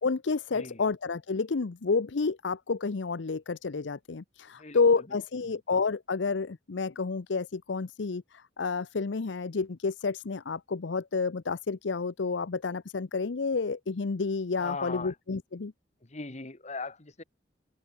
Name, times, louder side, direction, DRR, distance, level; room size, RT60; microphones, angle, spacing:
voice 1, 0.0-15.7, left 4 dB, 80° left, 0.7 m, -30 dB
voice 2, 4.6-5.2 14.5-15.1 16.0-17.2, left 3 dB, 40° left, 1.7 m, -39 dB
head